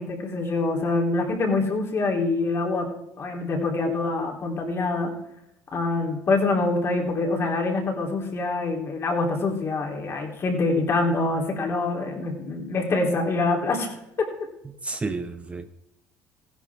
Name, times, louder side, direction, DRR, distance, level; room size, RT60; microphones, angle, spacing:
voice 1, 0.0-2.9 3.2-5.1 5.7-13.9 14.2-14.3, left 3 dB, 40° left, 1 dB, 3.4 m, -25 dB
voice 2, 14.7-15.8, right 3 dB, 20° right, 9 dB, 0.8 m, -32 dB
15.5 x 11.0 x 3.6 m, 0.82 s
supercardioid pair, 85°, 6 cm